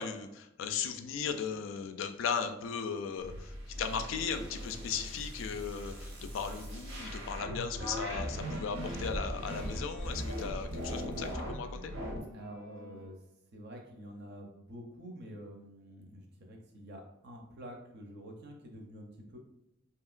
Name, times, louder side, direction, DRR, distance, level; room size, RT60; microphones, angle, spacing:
voice 1, 0.0-11.9, left 6 dB, 85° left, 8 dB, 0.3 m, -37 dB
sound 1, 3.2-12.2, equal, 85° right, 0.8 m, -39 dB
sound 2, 7.8-13.1, left 1 dB, 20° left, 0.6 m, -55 dB
voice 2, 12.3-13.2 13.5-19.4, equal, 60° right, 2 dB, 0.6 m, -48 dB
2.8 x 2.8 x 2.4 m, 0.87 s
head